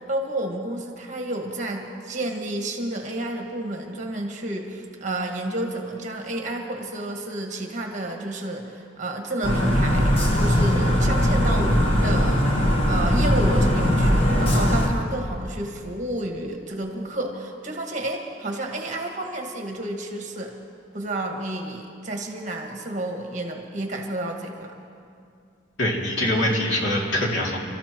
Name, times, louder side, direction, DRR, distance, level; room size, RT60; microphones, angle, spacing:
voice 1, 0.0-20.5 20.9-24.7, right 1 dB, 40° right, 2 dB, 1.7 m, -31 dB
sound 1, 9.4-14.9, equal, 30° left, 1.5 m, -20 dB
voice 2, 25.8-27.6, left 1 dB, 80° left, -2 dB, 2.7 m, -23 dB
30.0 x 13.5 x 3.1 m, 2.3 s
head